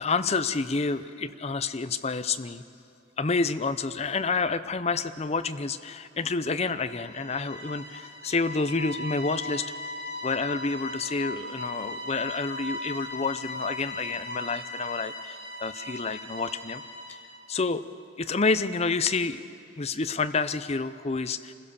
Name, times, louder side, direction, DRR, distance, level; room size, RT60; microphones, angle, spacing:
voice 1, 0.0-2.6 3.2-9.7 10.2-16.8 17.1-17.2 17.5-17.8 18.2-19.4 19.8-21.5, left 4 dB, 30° left, 11 dB, 0.6 m, -29 dB
sound 1, 6.7-17.5, left 2 dB, 50° right, 2.7 m, -38 dB
26.5 x 16.5 x 6.9 m, 2.8 s
head